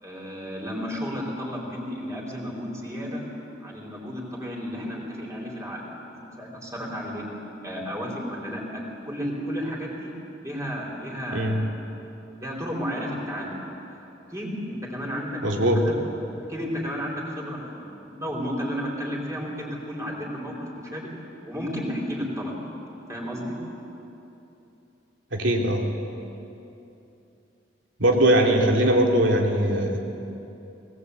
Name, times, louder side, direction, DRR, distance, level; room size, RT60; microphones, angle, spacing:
voice 1, 0.0-3.2 3.6-5.8 6.2-7.2 7.6-10.1 10.4-11.7 12.4-13.6 14.3-15.4 15.8-15.9 16.5-21.1 21.4-22.5 23.1-23.6, equal, 15° right, -3 dB, 4.2 m, -32 dB
voice 2, 15.4-15.8 25.3-25.9 28.0-30.0, right 1 dB, 80° right, 0 dB, 2.8 m, -20 dB
19.5 x 19.0 x 8.3 m, 2.9 s
head